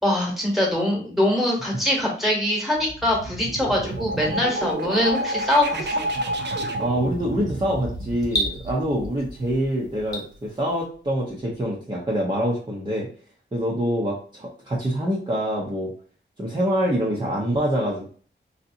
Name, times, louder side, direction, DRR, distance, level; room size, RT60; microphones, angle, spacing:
voice 1, 0.0-5.9, left 1 dB, ahead, -2 dB, 1.2 m, -23 dB
sound 1, 2.7-10.4, right 1 dB, 60° right, 0.5 m, -30 dB
sound 2, 3.8-10.9, equal, 20° left, 1.0 m, -37 dB
voice 2, 6.8-13.1 13.5-15.9 16.4-18.1, equal, 25° right, -5 dB, 0.7 m, -25 dB
3.2 x 2.7 x 2.6 m, 0.43 s
wide cardioid pair, 125°, 20 cm